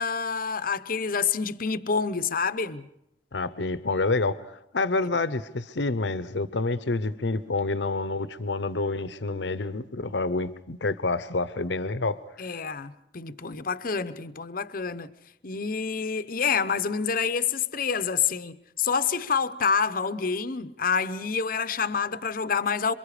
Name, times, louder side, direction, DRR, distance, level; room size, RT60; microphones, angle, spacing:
voice 1, 0.0-2.9 12.4-15.1 15.4-23.0, left 6 dB, 55° left, 0.8 m, -27 dB
voice 2, 3.3-12.2, left 3 dB, 85° left, 0.9 m, -28 dB
27.5 x 23.5 x 5.0 m
head